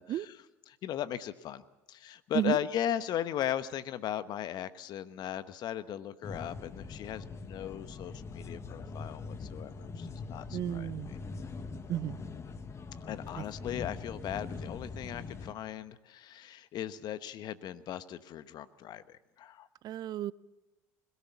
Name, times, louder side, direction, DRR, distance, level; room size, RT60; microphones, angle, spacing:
voice 1, 0.0-11.2 13.0-19.7, left 11 dB, 55° left, 1.1 m, -38 dB
sound 1, 6.2-15.5, left 4 dB, 35° left, 1.5 m, -42 dB
voice 2, 10.5-11.1 11.9-12.2 19.8-20.3, right 12 dB, 50° right, 0.6 m, -32 dB
21.5 x 17.0 x 7.1 m
hypercardioid pair, 75°, 9 cm